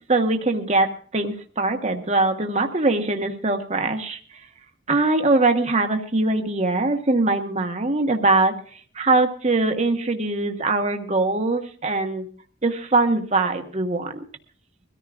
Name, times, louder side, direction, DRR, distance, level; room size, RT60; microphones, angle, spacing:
voice 1, 0.1-4.2 4.9-8.5 9.0-12.3 12.6-14.2, right 2 dB, 35° right, 5 dB, 1.3 m, -22 dB
23.0 x 14.0 x 2.5 m, 0.43 s
head